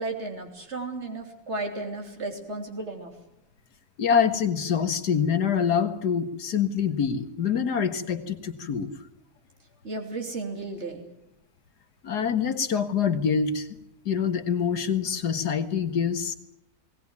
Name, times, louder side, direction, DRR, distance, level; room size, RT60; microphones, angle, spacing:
voice 1, 0.0-3.1 9.8-11.1, right 3 dB, 45° right, 3 dB, 3.5 m, -34 dB
voice 2, 4.0-8.9 12.0-13.7 14.1-16.3, left 7 dB, 85° left, 8 dB, 2.2 m, -25 dB
20.5 x 18.5 x 9.6 m, 0.86 s
omnidirectional pair, 1.7 m